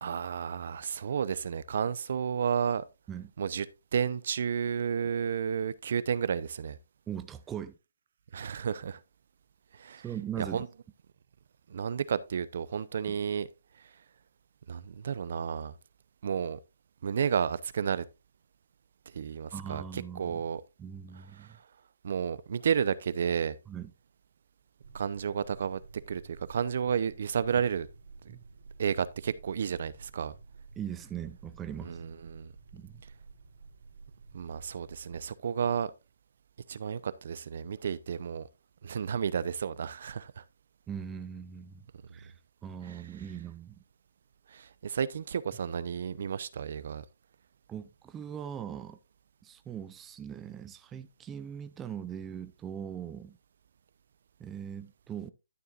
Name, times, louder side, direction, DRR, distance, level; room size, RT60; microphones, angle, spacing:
voice 1, 0.0-2.8 3.4-3.7 3.9-6.8 8.3-9.0 9.7-10.0 10.4-10.7 11.7-13.5 14.7-15.7 16.2-16.6 17.0-18.1 19.1-20.6 21.4-21.5 22.0-23.6 24.9-25.8 26.1-27.9 28.8-30.3 31.8-32.5 34.3-35.9 36.7-38.4 38.8-40.4 42.9-43.0 44.5-47.0, right 7 dB, 55° right, 0.6 m, -32 dB
voice 2, 7.1-7.7 10.0-10.6 13.1-13.2 19.5-20.4 20.8-21.6 23.7-23.9 28.3-28.4 30.8-32.0 32.7-33.0 40.9-41.9 42.1-42.3 42.6-43.8 47.7-49.0 49.4-53.4 54.4-55.3, right 8 dB, 10° right, 0.5 m, -40 dB
sound 1, 24.8-35.3, right 4 dB, 75° right, 2.9 m, -52 dB
12.0 x 6.8 x 2.5 m
hypercardioid pair, 160°, 0 cm